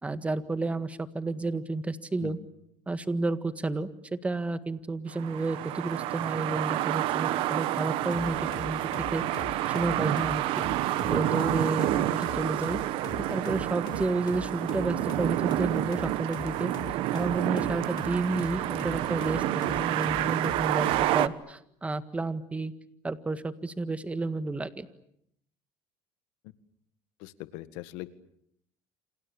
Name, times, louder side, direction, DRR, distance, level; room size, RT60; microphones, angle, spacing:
voice 1, 0.0-2.4 2.9-10.6 11.1-12.8 13.3-16.7 17.1-22.7 23.0-24.9, right 3 dB, 15° right, 11 dB, 1.7 m, -31 dB
sound 1, 5.1-21.3, right 15 dB, 70° right, 1.1 m, -29 dB
sound 2, 8.1-21.2, left 10 dB, 50° left, 1.8 m, -43 dB
voice 2, 27.2-28.1, left 17 dB, 85° left, 12 dB, 1.8 m, -40 dB
28.0 x 28.0 x 7.0 m, 0.72 s
cardioid pair, 120°, 9 cm